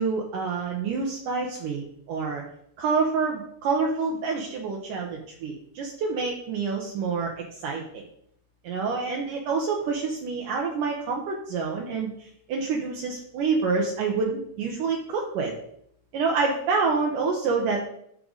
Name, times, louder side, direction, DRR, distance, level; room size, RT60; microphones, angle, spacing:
voice 1, 0.0-2.4 2.8-8.0 8.6-15.5 16.1-17.8, right 4 dB, 80° right, 0 dB, 1.9 m, -27 dB
12.0 x 5.0 x 3.9 m, 0.71 s
omnidirectional pair, 5.0 m